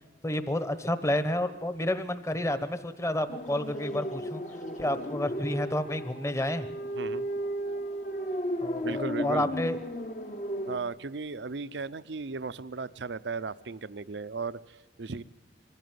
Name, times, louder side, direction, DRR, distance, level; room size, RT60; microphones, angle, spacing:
voice 1, 0.2-4.4 4.8-6.7 8.6-9.8, left 1 dB, 15° left, 11 dB, 1.1 m, -30 dB
sound 1, 3.3-10.8, equal, 45° left, 1.2 m, -34 dB
voice 2, 6.9-7.3 8.8-9.5 10.7-15.2, right 4 dB, 70° right, 15 dB, 0.7 m, -36 dB
23.5 x 15.5 x 9.5 m, 1.2 s
head